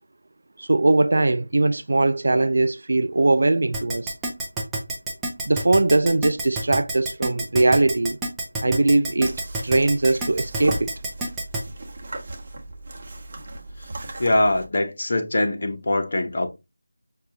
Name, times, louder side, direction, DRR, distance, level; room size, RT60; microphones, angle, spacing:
voice 1, 0.6-4.1 5.5-8.2 8.6-10.9, right 2 dB, 55° right, 0.3 m, -20 dB
Keyboard (musical), 3.7-11.6, right 2 dB, 5° right, 0.6 m, -28 dB
sound 1, 9.2-14.7, right 2 dB, 35° right, 0.9 m, -36 dB
voice 2, 14.2-16.5, left 1 dB, 45° left, 0.7 m, -22 dB
6.3 x 2.3 x 2.8 m
figure-of-eight pair, 165°, 0 cm